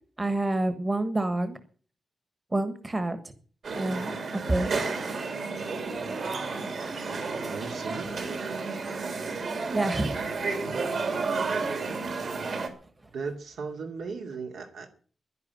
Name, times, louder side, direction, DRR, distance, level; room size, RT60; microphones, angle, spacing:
voice 1, 0.2-1.6 2.5-3.2 3.7-4.1 4.5-4.7 9.7-10.1, right 2 dB, 20° right, 10 dB, 1.4 m, -27 dB
sound 1, 3.6-12.7, right 4 dB, 50° right, 2.9 m, -31 dB
voice 2, 7.5-8.7 13.1-14.9, right 4 dB, 80° right, 3 dB, 2.5 m, -37 dB
11.0 x 11.0 x 9.5 m, 0.43 s
wide cardioid pair, 175°, 0 cm